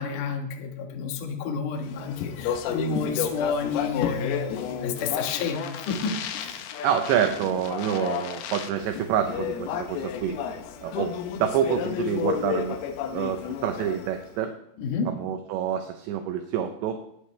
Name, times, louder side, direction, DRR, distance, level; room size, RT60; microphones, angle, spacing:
voice 1, 0.0-6.6 14.8-15.1, left 5 dB, 60° left, 3 dB, 2.2 m, -30 dB
Speech, 1.9-14.3, left 8 dB, 85° left, 2.2 m, -32 dB
voice 2, 6.8-10.4 10.8-12.8 13.1-14.5 15.1-17.0, right 9 dB, 80° right, 6 dB, 2.7 m, -27 dB
19.0 x 11.5 x 3.3 m, 0.76 s
omnidirectional pair, 5.9 m